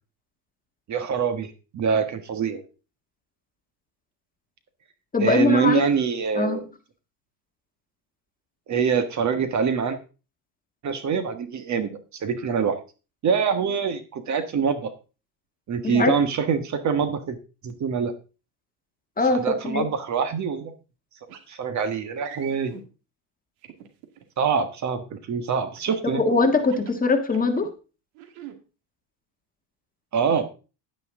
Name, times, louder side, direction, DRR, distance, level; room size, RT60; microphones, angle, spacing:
voice 1, 0.9-2.6 5.2-6.6 8.7-10.0 10.8-12.8 13.2-14.9 15.7-17.4 17.6-18.1 19.3-20.7 21.5-22.7 24.4-26.2 30.1-30.5, right 6 dB, 40° right, 10 dB, 1.5 m, -25 dB
voice 2, 5.1-5.9 6.4-6.7 15.8-16.1 19.2-19.9 26.0-27.7, left 3 dB, 20° left, 5 dB, 1.7 m, -22 dB
sound 1, 21.3-21.5 22.1-22.8 23.6-24.2 25.7-26.1 26.6-27.7 28.1-28.6, right 10 dB, 85° right, 2.3 m, -43 dB
10.5 x 9.9 x 3.7 m, 0.32 s
cardioid pair, 125°, 46 cm